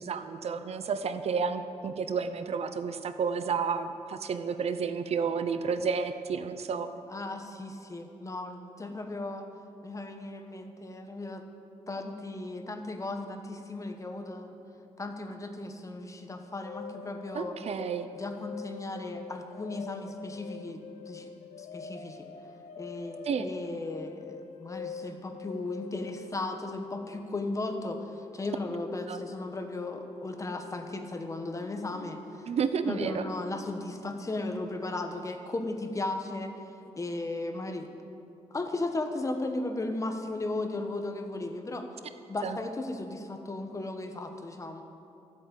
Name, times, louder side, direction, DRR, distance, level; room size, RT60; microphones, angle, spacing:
voice 1, 0.0-6.9 17.3-18.1 23.2-23.5 29.1-29.2 32.5-33.3 42.4-42.6, right 6 dB, 65° right, 10 dB, 0.7 m, -31 dB
voice 2, 7.1-9.5 9.8-11.4 11.9-14.5 15.0-17.5 18.2-21.3 21.6-22.3 22.8-32.5 32.9-36.5 37.0-37.9 38.5-41.9 42.3-44.8, left 2 dB, 25° left, 5 dB, 1.2 m, -36 dB
sound 1, 16.7-34.1, left 6 dB, 85° left, 0.8 m, -45 dB
13.5 x 8.5 x 8.2 m, 2.6 s
wide cardioid pair, 120°, 12 cm